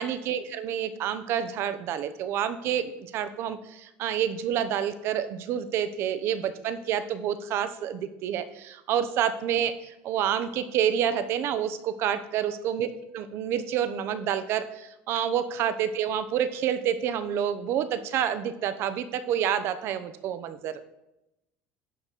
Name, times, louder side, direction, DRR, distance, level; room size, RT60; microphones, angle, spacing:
voice 1, 0.0-20.8, right 9 dB, 55° right, 11 dB, 0.8 m, -28 dB
11.0 x 4.1 x 6.7 m, 0.89 s
cardioid pair, 125°, 5 cm